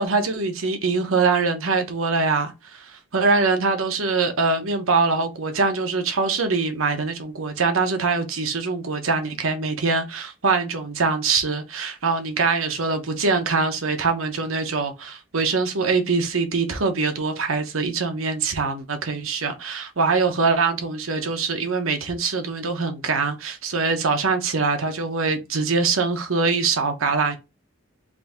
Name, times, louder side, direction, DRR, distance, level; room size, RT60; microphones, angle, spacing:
voice 1, 0.0-27.4, right 4 dB, 90° right, 1.0 m, -23 dB
3.8 x 2.7 x 3.5 m
head